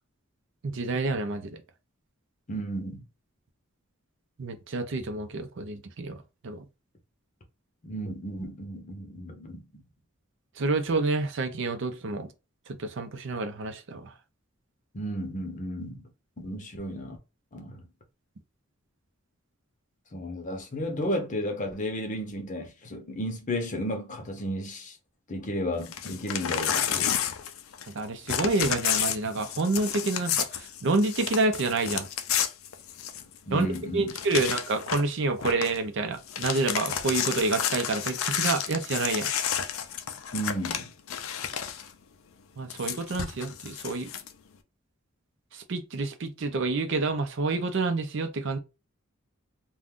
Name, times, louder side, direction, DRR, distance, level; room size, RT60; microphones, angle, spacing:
voice 1, 0.6-1.5 4.4-6.2 6.4-6.6 10.6-12.3 12.8-14.1 28.0-32.1 33.5-33.7 33.9-39.3 42.6-44.1 45.7-48.6, right 3 dB, 60° right, 0.5 m, -28 dB
voice 2, 2.5-3.1 7.8-9.8 14.9-16.1 16.4-17.2 17.5-17.8 20.1-25.0 25.3-27.2 33.5-34.1 40.3-40.9, equal, 35° left, 0.7 m, -33 dB
Crumpling crinkling / Tearing, 25.8-28.0 28.3-33.4 33.7-33.8 34.1-35.1 35.4-35.8 36.1-41.9 42.7-44.3, left 9 dB, 80° left, 0.4 m, -31 dB
2.5 x 2.3 x 3.5 m
head